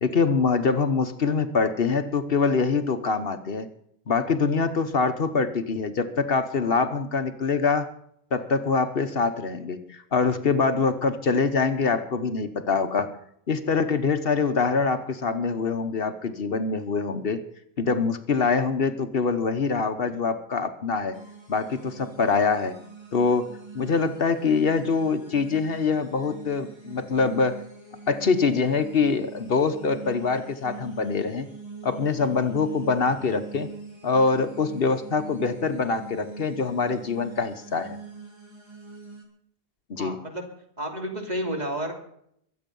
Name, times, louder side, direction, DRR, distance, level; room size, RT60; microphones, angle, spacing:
voice 1, 0.0-3.7 4.1-7.9 8.3-13.1 13.5-17.4 17.8-21.2 21.5-22.7 23.1-27.6 28.1-31.5 31.8-33.7 34.0-38.0 39.9-40.2, left 4 dB, 65° left, 9 dB, 1.2 m, -24 dB
sound 1, 21.1-39.2, right 4 dB, 25° right, 3.2 m, -43 dB
voice 2, 40.0-40.5 40.8-41.9, right 1 dB, 40° right, 2 dB, 3.1 m, -31 dB
23.0 x 8.5 x 5.4 m, 0.70 s
omnidirectional pair, 1.1 m